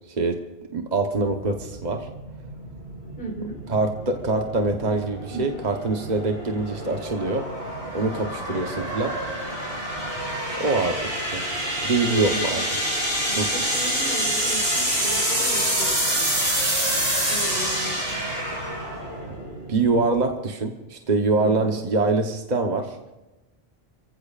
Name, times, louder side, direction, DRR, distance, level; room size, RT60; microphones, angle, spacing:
voice 1, 0.1-0.4 0.7-2.1 3.7-7.4 7.9-9.1 10.6-11.4 11.8-12.6 13.4-13.5 19.7-23.0, right 3 dB, 45° right, 3 dB, 1.1 m, -24 dB
sound 1, 1.4-20.3, right 1 dB, 70° right, 6.6 m, -27 dB
voice 2, 3.2-3.6 5.3-5.4 12.1-12.7 13.3-16.3 17.3-18.2 21.3-21.8, right 1 dB, 55° left, -1 dB, 4.5 m, -35 dB
29.5 x 15.5 x 2.5 m, 1.0 s
omnidirectional pair, 1.1 m